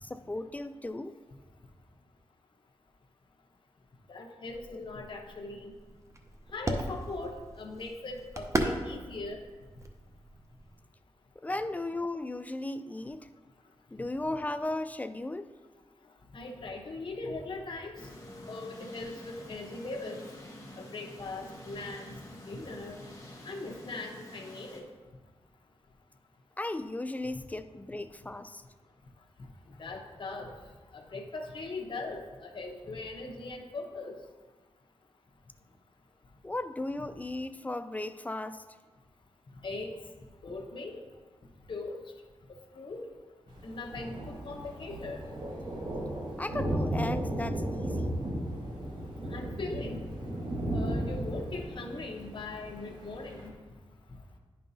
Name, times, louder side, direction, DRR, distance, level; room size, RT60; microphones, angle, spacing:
voice 1, 0.0-1.2 11.4-13.3 13.9-15.5 26.6-28.6 36.4-38.6 46.4-48.1, left 2 dB, 15° left, 11 dB, 0.3 m, -36 dB
voice 2, 4.1-5.7 6.5-9.4 16.3-17.9 18.5-20.2 20.8-22.1 22.5-23.0 23.4-24.9 29.8-30.5 30.9-34.2 39.6-39.9 40.4-41.0 41.7-42.0 42.7-43.0 43.6-45.2 49.3-50.0 50.7-53.5, left 3 dB, 50° left, 0 dB, 0.9 m, -40 dB
sound 1, 4.5-10.8, right 1 dB, 30° right, 0.7 m, -37 dB
sound 2, 18.0-24.8, left 1 dB, 30° left, 1.3 m, -48 dB
Thunder, 43.5-53.5, right 1 dB, 45° right, 1.4 m, -35 dB
10.0 x 5.4 x 2.7 m, 1.3 s
wide cardioid pair, 90°, 11 cm